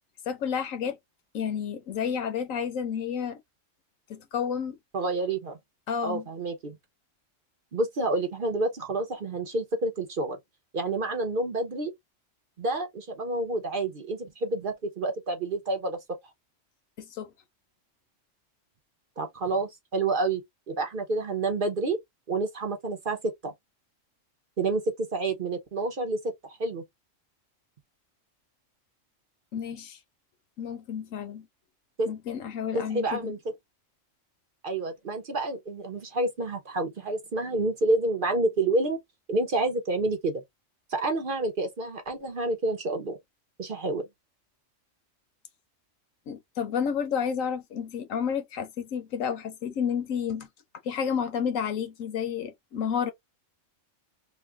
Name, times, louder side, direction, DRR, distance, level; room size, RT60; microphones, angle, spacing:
voice 1, 0.3-1.0 1.3-3.4 4.1-4.8 5.9-6.3 17.0-17.3 29.5-30.0 30.6-31.5 32.1-33.3 46.3-50.5 50.8-53.1, left 7 dB, 85° left, 1.2 m, -30 dB
voice 2, 4.9-5.6 6.0-6.8 7.7-10.4 10.7-11.9 12.6-16.0 19.2-20.4 20.7-22.0 22.3-23.5 24.6-26.8 32.0-32.1 32.7-33.4 34.6-39.0 39.3-40.4 40.9-43.2 43.6-44.1, right 2 dB, 50° right, 0.8 m, -29 dB
3.1 x 2.3 x 3.4 m
omnidirectional pair, 1.3 m